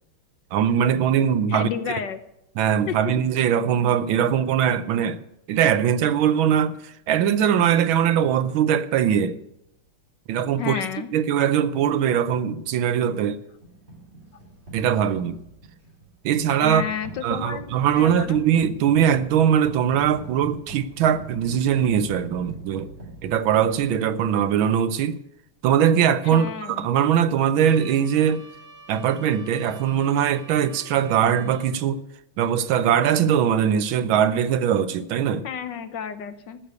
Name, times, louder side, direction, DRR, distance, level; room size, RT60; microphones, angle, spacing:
voice 1, 0.5-2.0 2.6-9.4 10.3-10.8 11.1-13.4 14.7-15.4 16.2-16.8 17.2-22.9 23.2-25.2 25.6-28.4 28.9-32.0 32.4-35.5, right 9 dB, 75° right, 1.5 m, -21 dB
voice 2, 1.5-2.2 2.9-3.0 10.6-11.1 16.6-18.4 26.2-26.9 35.4-36.6, left 7 dB, 65° left, 1.3 m, -31 dB
sound 1, 13.6-24.5, right 2 dB, 30° right, 4.0 m, -43 dB
Trumpet, 27.6-31.8, right 3 dB, 25° left, 4.3 m, -47 dB
14.5 x 6.6 x 9.5 m
omnidirectional pair, 2.4 m